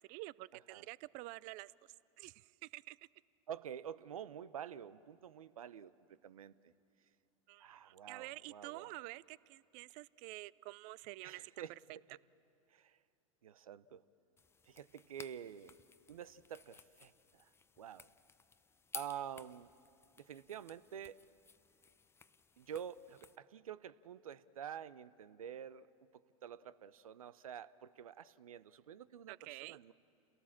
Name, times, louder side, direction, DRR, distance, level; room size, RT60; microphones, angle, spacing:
voice 1, 0.0-1.7 2.2-3.0 7.5-11.5 29.3-29.8, right 20 dB, 45° right, 21 dB, 0.5 m, -49 dB
voice 2, 3.5-5.9 6.2-6.7 7.6-8.9 11.2-11.7 12.1-12.2 12.7-13.0 13.4-14.0 14.7-15.8 16.1-17.5 17.8-18.1 18.9-19.7 20.3-21.2 22.6-25.9 26.1-29.9, right 9 dB, 80° right, 17 dB, 0.7 m, -48 dB
sound 1, 14.4-23.4, left 5 dB, 15° left, 0.7 m, -56 dB
29.0 x 17.5 x 7.4 m, 2.6 s
hypercardioid pair, 100°, 18 cm